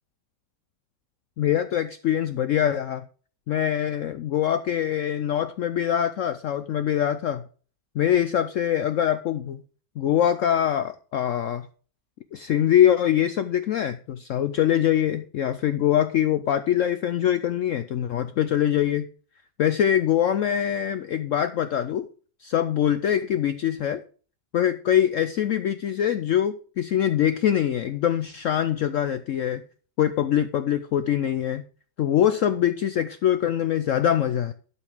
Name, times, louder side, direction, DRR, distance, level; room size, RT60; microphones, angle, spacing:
voice 1, 1.4-3.0 3.5-7.4 8.0-9.6 10.0-11.7 12.3-19.1 19.6-22.1 22.4-24.0 24.5-29.6 30.0-31.6 32.0-34.5, left 10 dB, 70° left, 11 dB, 0.7 m, -23 dB
12.0 x 5.5 x 4.9 m, 0.41 s
omnidirectional pair, 1.8 m